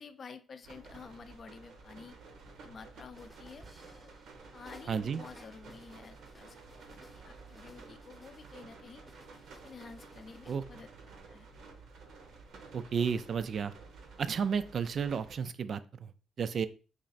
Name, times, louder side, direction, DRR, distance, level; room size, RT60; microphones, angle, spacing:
voice 1, 0.0-2.2 2.6-3.7 4.5-6.6 6.9-9.1 9.6-10.9 11.3-11.5, left 5 dB, 45° left, 10 dB, 0.4 m, -50 dB
sound 1, 0.6-15.4, right 3 dB, 70° right, 0.8 m, -52 dB
sound 2, 3.1-4.3 4.7-8.6 9.1-10.7, equal, ahead, 0.7 m, -58 dB
voice 2, 4.9-5.2 10.5-10.6 12.7-13.7 14.2-16.1 16.4-16.7, right 6 dB, 55° right, 14 dB, 0.3 m, -32 dB
3.2 x 2.4 x 3.9 m, 0.36 s
cardioid pair, 90°, 0 cm